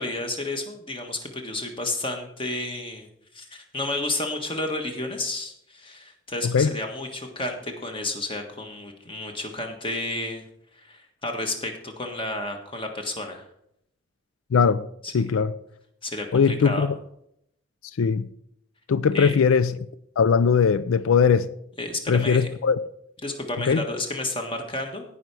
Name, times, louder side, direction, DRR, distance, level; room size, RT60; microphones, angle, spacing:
voice 1, 0.0-3.1 3.3-10.4 10.8-13.4 15.0-15.3 16.0-16.9 19.1-19.3 21.8-22.5 23.2-25.0, left 2 dB, 25° left, 1.5 m, -31 dB
voice 2, 14.5-14.8 15.1-15.5 16.3-16.9 18.0-18.3 18.9-19.9 20.2-21.5 22.1-22.8 23.6-23.8, left 6 dB, 85° left, 0.4 m, -20 dB
17.0 x 5.6 x 4.7 m
head